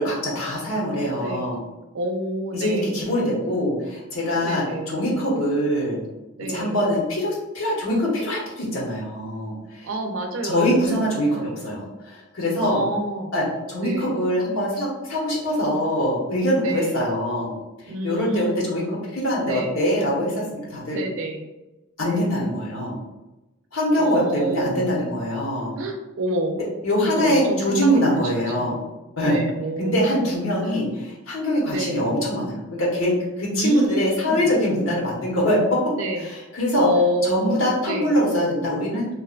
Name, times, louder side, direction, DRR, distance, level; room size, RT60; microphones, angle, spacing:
voice 1, 0.0-1.6 2.5-6.0 6.5-9.9 10.4-12.8 13.3-17.5 18.0-18.8 19.1-21.0 22.0-23.0 23.7-25.7 26.8-28.8 29.2-29.3 29.8-35.9 36.2-36.9 37.2-39.1, equal, 85° left, -4 dB, 0.8 m, -23 dB
voice 2, 1.2-1.6 1.9-3.1 4.4-5.0 6.4-6.8 9.8-11.7 12.6-13.3 13.8-14.2 16.6-17.2 17.9-18.7 19.4-19.8 20.9-21.5 22.0-22.3 24.0-24.9 25.8-26.6 27.0-28.9 29.2-30.3 30.6-30.8 31.7-32.1 33.5-34.4 35.9-36.3 36.7-38.2, right 1 dB, 80° right, 3 dB, 0.4 m, -28 dB
2.6 x 2.1 x 2.4 m, 1.0 s
head